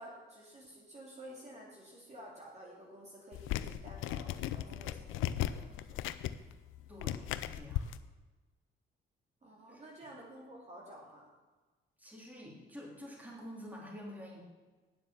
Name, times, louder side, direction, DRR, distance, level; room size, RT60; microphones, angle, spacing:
voice 1, 0.0-6.0 9.4-11.3, equal, 35° right, -3 dB, 2.6 m, -51 dB
sound 1, 3.3-8.0, left 12 dB, 90° left, 0.5 m, -37 dB
voice 2, 6.9-7.8 9.7-9.9 12.0-14.4, left 1 dB, 10° right, -3 dB, 3.3 m, -48 dB
9.2 x 7.5 x 7.2 m, 1.3 s
cardioid pair, 90°, 20 cm